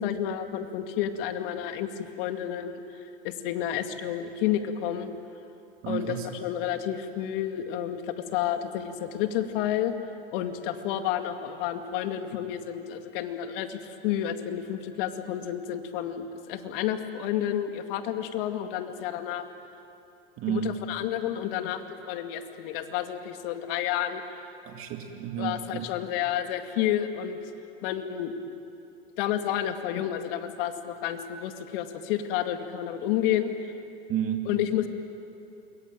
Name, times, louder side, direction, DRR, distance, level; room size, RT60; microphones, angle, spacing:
voice 1, 0.0-5.1 5.9-9.9 10.3-19.4 20.5-24.2 25.4-27.4 27.8-28.3 29.2-33.7 34.5-34.9, left 10 dB, 70° left, 7 dB, 2.3 m, -30 dB
voice 2, 5.8-6.3 20.4-20.8 24.7-25.9 34.1-34.5, right 9 dB, 50° right, 4 dB, 2.3 m, -31 dB
28.0 x 22.5 x 9.1 m, 2.7 s
hypercardioid pair, 90°, 29 cm